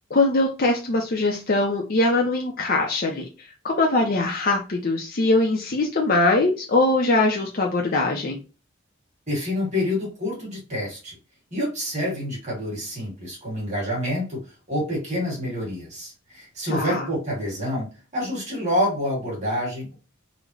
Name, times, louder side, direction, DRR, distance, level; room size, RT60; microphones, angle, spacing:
voice 1, 0.1-3.2 3.6-8.4 16.7-17.1, left 2 dB, 50° left, 1 dB, 0.5 m, -22 dB
voice 2, 9.3-11.2 11.5-14.4 14.7-17.9 18.1-19.9, left 1 dB, 35° right, -4 dB, 2.0 m, -27 dB
3.7 x 2.1 x 3.2 m, 0.31 s
head